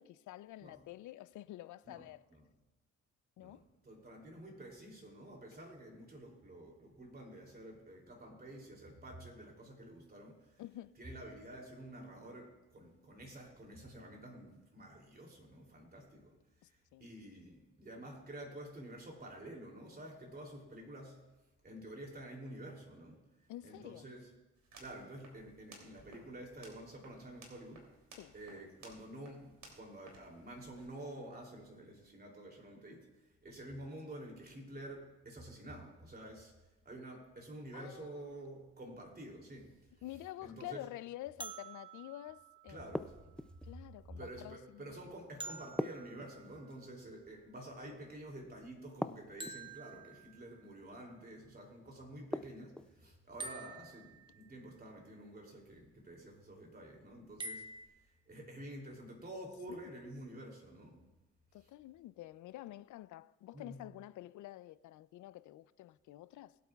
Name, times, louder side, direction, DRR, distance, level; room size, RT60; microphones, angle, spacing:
voice 1, 0.0-2.2 3.4-3.6 10.6-10.9 16.6-17.1 23.5-24.1 28.2-28.3 37.7-38.1 40.0-43.0 43.6-45.0 59.7-59.9 61.5-66.6, left 15 dB, 75° left, 0.5 m, -49 dB
voice 2, 3.4-10.6 11.0-16.4 16.6-21.2 21.6-23.2 23.6-24.3 24.8-27.9 28.3-33.1 33.4-36.5 36.8-39.8 40.4-40.9 42.7-43.7 44.2-57.6 58.3-61.0 61.6-61.7 63.5-63.8, right 1 dB, 30° right, 3.0 m, -49 dB
sound 1, 24.5-30.9, right 3 dB, 65° right, 3.0 m, -59 dB
Toy Glockenspiel, 41.4-43.4 45.4-47.2 49.4-50.8 53.4-54.7 57.4-57.9, right 3 dB, 15° right, 1.0 m, -49 dB
sound 2, 42.9-43.7 45.8-46.8 49.0-49.8 52.3-53.0, left 1 dB, 5° left, 0.4 m, -40 dB
21.0 x 8.4 x 2.4 m
cardioid pair, 90°, 30 cm